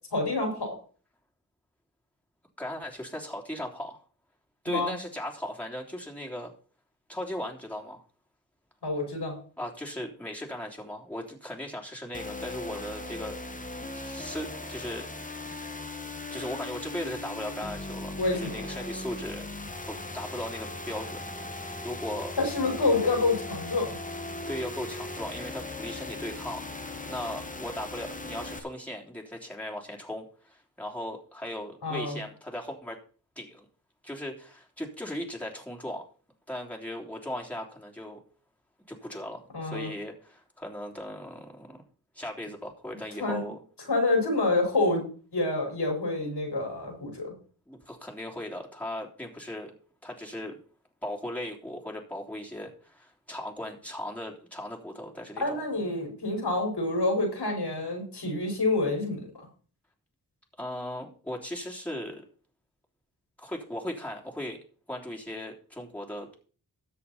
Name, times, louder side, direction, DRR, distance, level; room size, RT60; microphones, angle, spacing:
voice 1, 0.1-0.7 4.7-4.9 8.8-9.4 18.2-18.6 22.4-24.0 31.8-32.2 39.5-39.9 43.2-43.4 43.9-45.0 45.3-47.3 55.4-59.5, left 2 dB, 80° left, 2 dB, 4.9 m, -27 dB
voice 2, 2.6-4.0 4.6-6.5 7.1-8.0 9.6-13.4 13.9-15.6 16.3-19.5 19.9-21.6 21.8-22.4 24.5-33.0 33.3-33.6 34.0-36.1 36.5-38.2 38.9-41.8 42.1-43.6 47.7-49.7 50.0-50.6 51.0-55.6 60.6-62.2 63.4-64.6 64.9-66.4, left 1 dB, 5° left, -2 dB, 3.3 m, -38 dB
sound 1, 12.1-28.6, left 2 dB, 20° left, 1.6 m, -38 dB
13.5 x 7.7 x 4.2 m, 0.40 s
cardioid pair, 45°, 39 cm